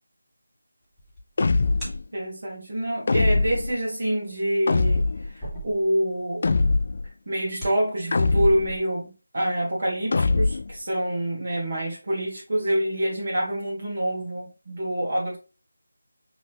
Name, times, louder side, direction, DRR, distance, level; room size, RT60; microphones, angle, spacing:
sound 1, 0.8-2.4 3.9-6.4 6.6-6.7 7.3-7.8, right 1 dB, 5° right, 1.8 m, -40 dB
sound 2, 1.4-2.0 3.1-3.8 4.7-5.3 6.4-7.1 8.1-8.8 10.1-10.8, left 3 dB, 45° left, 0.3 m, -22 dB
voice 1, 2.1-6.7 7.3-15.4, right 1 dB, 55° right, 1.6 m, -27 dB
5.1 x 3.1 x 3.2 m
figure-of-eight pair, 170°, 0 cm